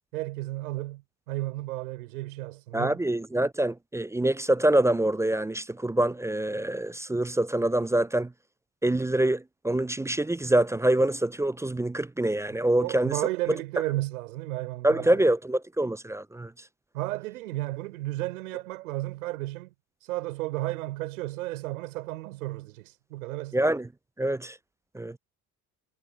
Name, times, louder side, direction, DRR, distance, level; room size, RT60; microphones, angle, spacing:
voice 1, 0.1-3.0 12.8-15.2 16.9-19.7 20.0-23.6, right 18 dB, 75° right, 3.8 m, -33 dB
voice 2, 2.7-8.3 8.8-13.1 14.8-16.5 23.5-23.9 24.2-24.6 24.9-25.2, right 1 dB, 5° right, 0.4 m, -25 dB
hypercardioid pair, 65°, 43 cm